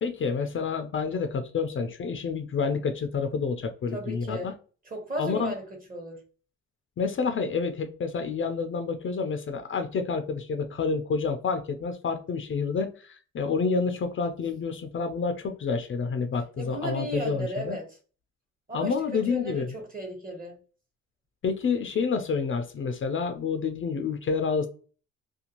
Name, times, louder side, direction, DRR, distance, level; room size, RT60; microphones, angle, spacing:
voice 1, 0.0-4.5 5.2-5.5 7.0-17.8 18.7-19.7 21.4-24.7, left 5 dB, 40° left, 0.5 m, -29 dB
voice 2, 3.9-4.5 4.8-6.2 16.6-17.9 18.7-20.6, right 1 dB, 30° right, 1.2 m, -35 dB
2.6 x 2.2 x 2.9 m
cardioid pair, 90°, 30 cm